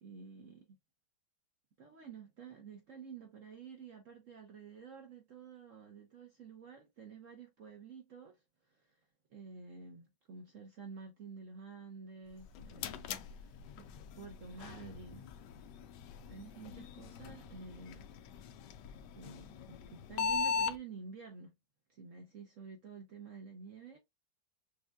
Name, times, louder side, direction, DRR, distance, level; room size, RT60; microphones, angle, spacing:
voice 1, 0.0-0.8 1.8-9.0 9.3-13.9 14.1-15.3 16.3-18.1 19.2-21.5 21.9-24.0, right 5 dB, 65° right, 0.8 m, -50 dB
sound 1, 12.3-20.8, left 5 dB, 75° left, 1.0 m, -40 dB
6.3 x 2.3 x 2.3 m
omnidirectional pair, 2.2 m